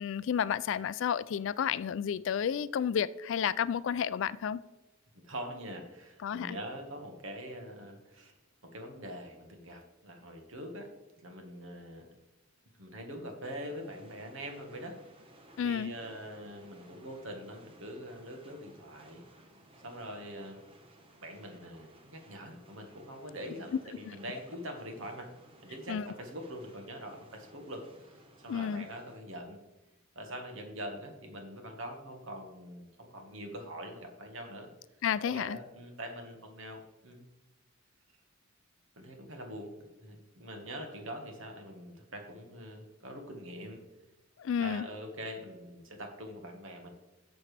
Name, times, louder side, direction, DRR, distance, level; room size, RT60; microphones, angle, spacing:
voice 1, 0.0-4.6 6.2-6.6 15.6-15.9 25.9-26.1 28.5-28.9 35.0-35.6 44.4-44.9, left 8 dB, 60° left, 0.3 m, -31 dB
voice 2, 5.1-8.3 8.6-10.9 11.2-12.1 12.8-15.0 15.6-19.2 19.8-20.6 21.2-25.3 25.6-29.6 30.1-34.7 35.2-37.3 39.0-43.8 44.6-46.9, equal, 65° right, 1.5 m, -44 dB
sound 1, 13.4-29.2, right 1 dB, 25° right, 0.9 m, -59 dB
11.5 x 7.1 x 3.3 m
head